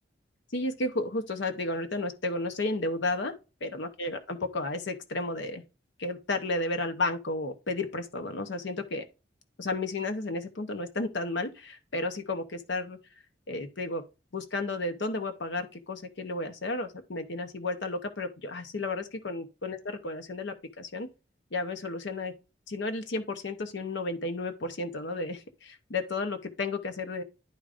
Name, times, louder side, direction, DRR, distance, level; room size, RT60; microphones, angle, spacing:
voice 1, 0.5-3.3 3.6-5.6 6.0-9.0 9.6-13.0 13.5-14.0 14.3-21.1 21.5-22.3 22.7-27.2, left 2 dB, 70° left, 0.8 m, -32 dB
10.5 x 4.9 x 2.5 m
head